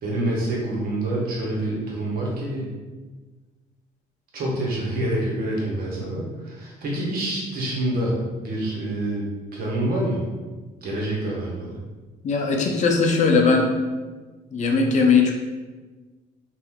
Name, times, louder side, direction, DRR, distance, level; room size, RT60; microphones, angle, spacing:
voice 1, 0.0-2.7 4.3-10.2 10.8-11.8, right 1 dB, 60° right, -4 dB, 1.1 m, -27 dB
voice 2, 12.2-13.7 14.5-15.3, left 4 dB, 45° left, 1 dB, 0.5 m, -19 dB
2.7 x 2.5 x 3.5 m, 1.3 s
cardioid pair, 110°, 17 cm